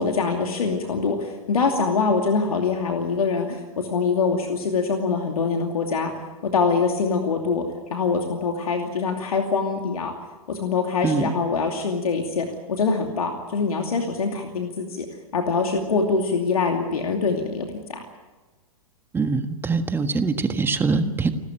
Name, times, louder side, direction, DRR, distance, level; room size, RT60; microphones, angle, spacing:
voice 1, 0.0-6.1 6.4-7.6 7.9-10.1 10.5-15.1 15.3-18.0, left 4 dB, 75° left, 3 dB, 2.7 m, -24 dB
voice 2, 19.1-21.3, right 4 dB, 10° right, 8 dB, 1.6 m, -23 dB
29.5 x 13.0 x 9.1 m, 1.2 s
hypercardioid pair, 115°, 19 cm